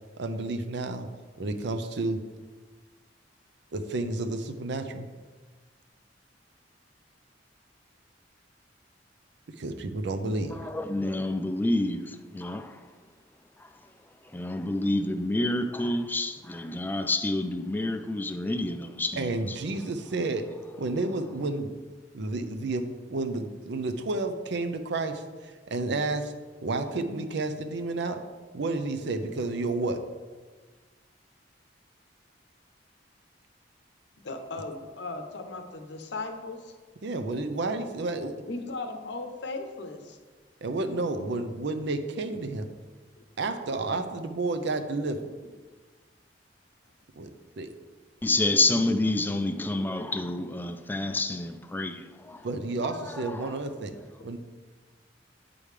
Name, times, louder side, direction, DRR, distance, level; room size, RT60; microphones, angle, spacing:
voice 1, 0.2-1.1 1.4-2.2 3.7-5.1 9.6-10.6 19.2-20.5 20.8-21.7 22.1-26.3 26.6-28.2 28.5-30.0 37.0-38.3 40.6-42.7 43.4-45.3 47.2-47.3 47.6-47.7 52.4-53.9 54.2-54.4, right 2 dB, 70° right, 0.6 m, -31 dB
voice 2, 10.7-12.0 12.3-12.7 14.3-19.3 48.2-52.4, left 2 dB, 10° left, 0.3 m, -28 dB
voice 3, 34.2-36.7 38.5-40.2 43.2-43.3 52.3-52.4, left 3 dB, 70° left, 0.7 m, -37 dB
8.5 x 5.1 x 3.2 m
head